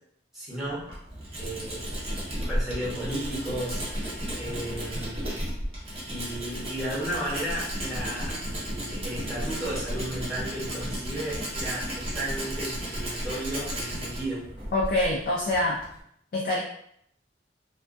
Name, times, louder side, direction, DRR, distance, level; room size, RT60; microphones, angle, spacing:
voice 1, 0.3-0.9 1.4-1.9 2.5-3.8 4.4-5.4 6.1-8.4 8.6-14.5, right 1 dB, ahead, -9 dB, 0.9 m, -34 dB
Tools, 0.6-16.0, equal, 30° right, 0.6 m, -34 dB
voice 2, 14.7-15.8 16.3-16.6, left 1 dB, 50° left, -3 dB, 0.3 m, -25 dB
2.3 x 2.2 x 2.5 m, 0.71 s
head